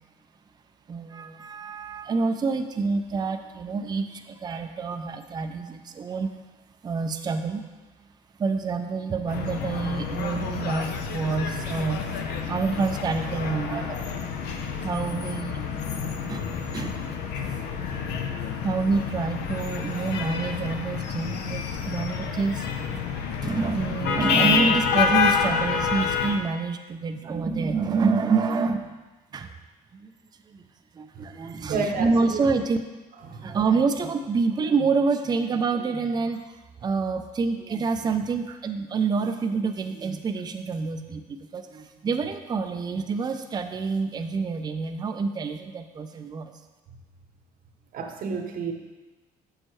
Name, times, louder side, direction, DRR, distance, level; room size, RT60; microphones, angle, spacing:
voice 1, 0.9-6.3 6.8-7.6 8.4-14.1 14.8-15.6 16.3-16.5 16.7-17.1 18.6-22.7 23.4-28.9 29.3-29.5 29.9-30.1 30.5-30.6 30.9-32.8 33.4-36.4 36.8-46.5, right 4 dB, 25° right, 6 dB, 0.4 m, -27 dB
sound 1, 9.3-26.4, left 6 dB, 80° left, 0.7 m, -28 dB
voice 2, 31.7-32.4 33.3-33.6 47.9-48.7, right 4 dB, 55° right, 4 dB, 0.9 m, -30 dB
6.4 x 6.2 x 3.1 m, 1.2 s
cardioid pair, 110°, 17 cm